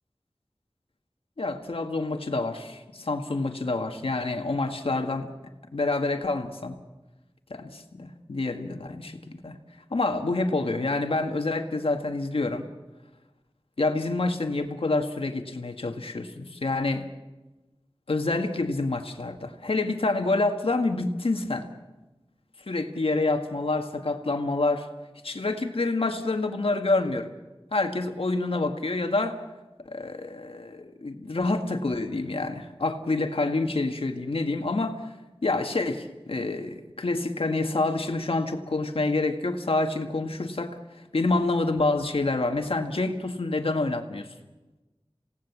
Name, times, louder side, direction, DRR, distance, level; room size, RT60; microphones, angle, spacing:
voice 1, 1.4-5.3 5.7-6.8 7.5-9.6 9.9-12.7 13.8-17.1 18.1-21.7 22.7-24.9 25.2-27.3 27.7-29.4 29.9-35.0 35.4-44.3, left 2 dB, 90° left, 5 dB, 1.9 m, -27 dB
27.5 x 18.0 x 7.4 m, 1.1 s
wide cardioid pair, 50°, 9 cm